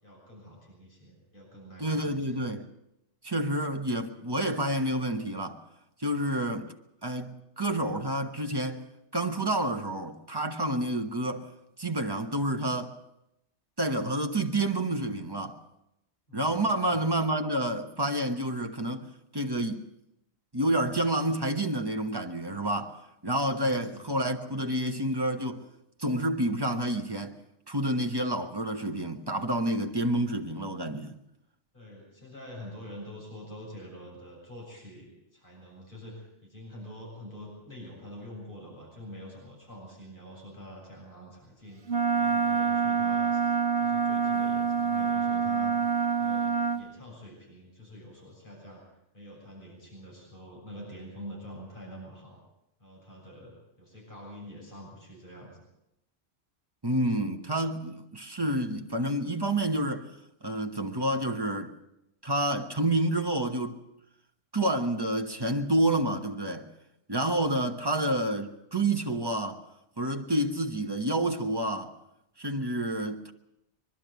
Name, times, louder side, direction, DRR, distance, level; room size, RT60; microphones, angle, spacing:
voice 1, 0.0-2.4 16.3-17.1 23.6-23.9 31.7-41.8 42.1-43.4 43.8-45.7 46.2-48.8 49.1-52.4 52.8-55.7, equal, 50° left, 6.9 m, -46 dB
voice 2, 1.8-2.6 3.2-5.6 6.0-6.7 7.0-8.9 9.1-11.5 11.8-12.9 13.8-15.6 16.3-19.8 20.5-22.9 23.2-25.6 26.0-27.4 27.7-31.1 56.8-60.1 60.4-61.7 62.2-63.8 64.5-66.7 67.1-69.6 70.0-71.9 72.4-73.3, right 1 dB, 20° right, 1.3 m, -29 dB
Wind instrument woodwind instrument, 41.9-46.8, right 6 dB, 70° right, 1.5 m, -26 dB
23.0 x 12.0 x 9.4 m
omnidirectional pair, 1.2 m